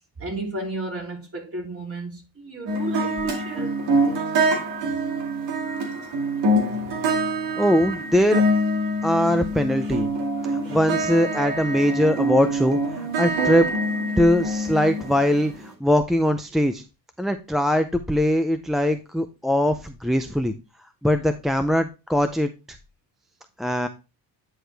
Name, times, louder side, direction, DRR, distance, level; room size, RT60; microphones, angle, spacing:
voice 1, 0.2-4.2 9.8-10.0 10.6-10.8, right 2 dB, 30° right, 3.2 m, -33 dB
sound 1, 2.7-15.7, right 1 dB, 80° right, 2.3 m, -25 dB
voice 2, 7.6-8.4 9.0-10.1 10.7-13.7 14.2-16.8 17.2-20.5 21.0-22.5 23.6-23.9, equal, ahead, 0.4 m, -21 dB
9.7 x 4.7 x 3.3 m
cardioid pair, 100°, 42 cm